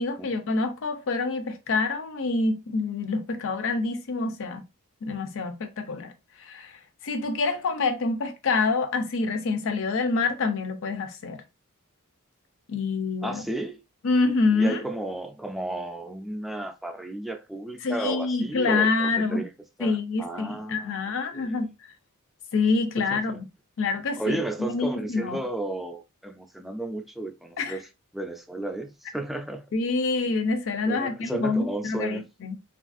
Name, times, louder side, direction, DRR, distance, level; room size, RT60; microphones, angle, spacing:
voice 1, 0.0-4.6 5.0-6.1 6.4-6.7 7.0-11.4 12.7-13.4 14.0-14.8 17.8-19.4 19.8-21.7 22.5-23.5 23.8-25.4 27.6-27.7 29.7-32.5, left 3 dB, 65° left, 0.5 m, -26 dB
voice 2, 13.2-13.8 14.5-19.5 19.8-21.5 23.1-23.4 24.1-27.9 28.1-29.7 30.8-32.2, right 2 dB, ahead, 0.3 m, -33 dB
3.2 x 2.4 x 2.5 m
head